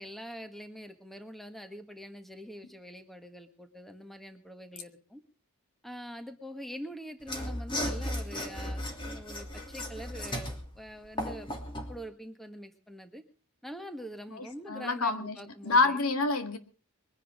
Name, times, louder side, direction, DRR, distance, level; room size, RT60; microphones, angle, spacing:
voice 1, 0.0-5.2 5.8-11.5 11.9-13.2 13.6-16.0, equal, ahead, 1.6 m, -44 dB
Mechanisms / Sawing, 7.2-12.0, left 1 dB, 20° left, 3.0 m, -36 dB
voice 2, 14.3-15.4 15.6-16.6, left 3 dB, 85° left, 2.0 m, -27 dB
22.5 x 10.5 x 5.0 m
head